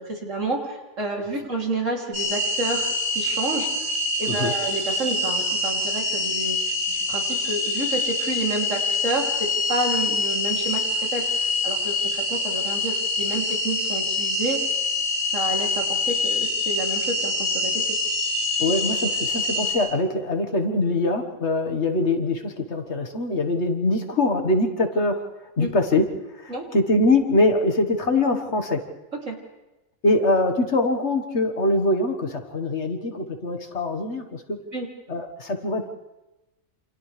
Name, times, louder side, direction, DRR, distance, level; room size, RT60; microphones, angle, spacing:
voice 1, 0.0-3.9 4.2-6.6 6.9-14.6 15.3-17.8 25.6-25.7 26.5-26.7 29.3-29.4 34.7-34.9, right 2 dB, 65° right, -1 dB, 3.5 m, -30 dB
sound 1, 2.1-19.7, left 2 dB, 85° right, 5.7 m, -25 dB
voice 2, 18.6-25.2 25.6-26.1 26.4-28.8 30.0-34.6 35.1-35.9, left 2 dB, 55° left, 5 dB, 1.9 m, -23 dB
28.5 x 27.5 x 3.4 m, 1.0 s
omnidirectional pair, 1.4 m